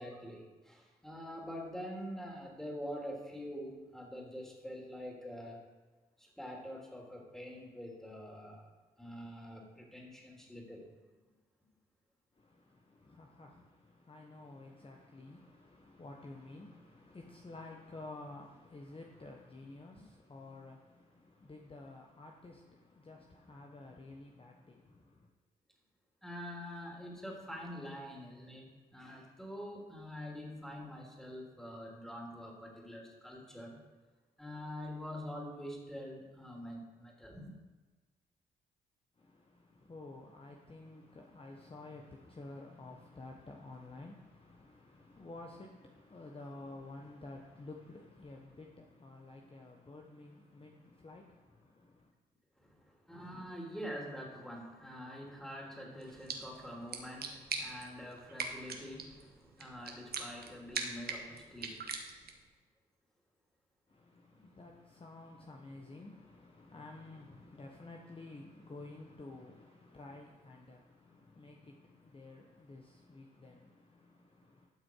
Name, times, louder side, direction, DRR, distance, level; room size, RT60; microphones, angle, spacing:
voice 1, 0.0-5.7 6.2-8.7 9.0-10.9 26.2-33.8 34.4-37.5 52.6-62.0, equal, ahead, 3.3 m, -45 dB
voice 2, 12.3-25.3 39.2-52.1 63.9-74.7, left 2 dB, 30° left, 1.2 m, -51 dB
sound 1, 56.0-62.5, right 4 dB, 60° right, 1.4 m, -43 dB
12.0 x 6.2 x 4.8 m
supercardioid pair, 50°, 18 cm